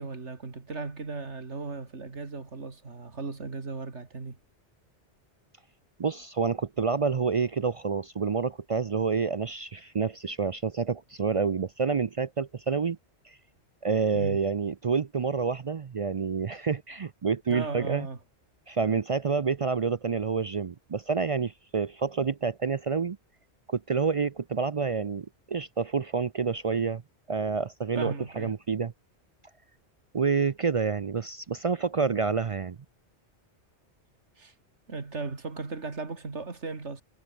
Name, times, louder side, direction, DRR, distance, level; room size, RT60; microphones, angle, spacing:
voice 1, 0.0-4.4 14.1-14.4 17.5-18.2 27.9-28.5 34.4-34.5 34.9-37.0, right 4 dB, 85° right, 2.9 m, -36 dB
voice 2, 6.0-13.0 13.2-13.4 13.8-18.1 18.7-23.2 23.7-27.0 27.3-28.9 30.1-32.8, right 5 dB, 45° right, 0.4 m, -28 dB
omnidirectional pair, 1.2 m